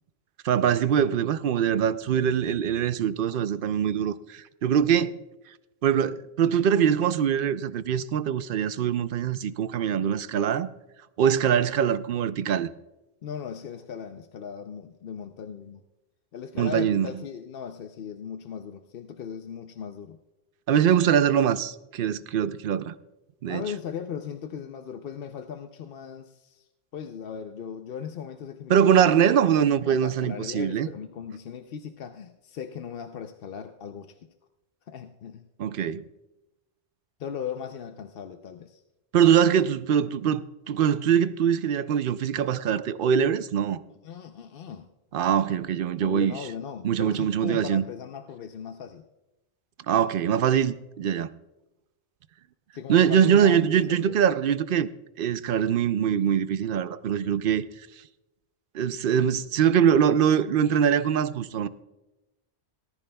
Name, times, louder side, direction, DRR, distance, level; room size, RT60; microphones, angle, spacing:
voice 1, 0.4-5.2 5.8-10.7 11.2-12.7 16.6-17.1 20.7-22.9 23.4-23.6 28.7-30.9 35.6-36.0 39.1-43.8 45.1-46.3 46.8-47.8 49.9-51.3 52.9-54.9 55.2-57.6 58.7-61.7, right 8 dB, 60° right, 0.6 m, -23 dB
voice 2, 13.2-15.8 16.3-20.2 23.5-29.1 29.8-34.2 34.9-35.5 37.2-38.8 43.9-44.9 46.0-49.1 52.7-54.2, left 7 dB, 60° left, 0.8 m, -38 dB
18.0 x 14.0 x 2.2 m
omnidirectional pair, 1.1 m